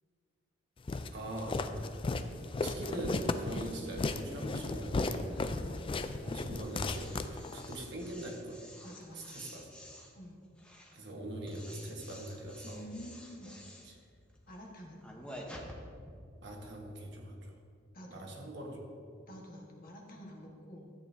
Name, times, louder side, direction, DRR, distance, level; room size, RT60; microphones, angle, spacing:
Walk footsteps, 0.9-7.8, left 3 dB, 30° left, 0.4 m, -35 dB
voice 1, 1.1-1.6 2.6-5.3 6.2-9.7 10.9-12.9 13.4-13.5 13.8-14.0 16.4-17.4 18.1-18.8, right 1 dB, 65° right, 1 dB, 1.4 m, -42 dB
voice 2, 5.3-6.0 8.8-9.4 10.1-10.4 12.6-13.5 14.5-15.0 17.9-18.2 19.3-20.9, equal, 50° left, 0 dB, 1.4 m, -49 dB
sound 1, 6.6-16.2, equal, 5° left, 0.9 m, -51 dB
13.0 x 8.9 x 2.7 m, 2.3 s
head